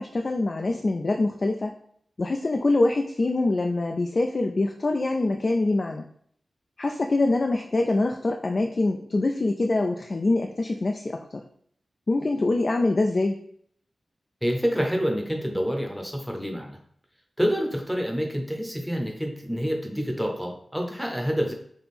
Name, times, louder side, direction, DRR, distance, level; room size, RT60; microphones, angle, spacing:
voice 1, 0.0-1.8 2.2-6.0 6.8-11.3 12.1-13.4, left 2 dB, 40° left, 3 dB, 0.3 m, -24 dB
voice 2, 14.4-16.8 17.4-21.5, equal, ahead, 2 dB, 0.7 m, -27 dB
3.6 x 2.8 x 4.2 m, 0.64 s
wide cardioid pair, 105°, 0 cm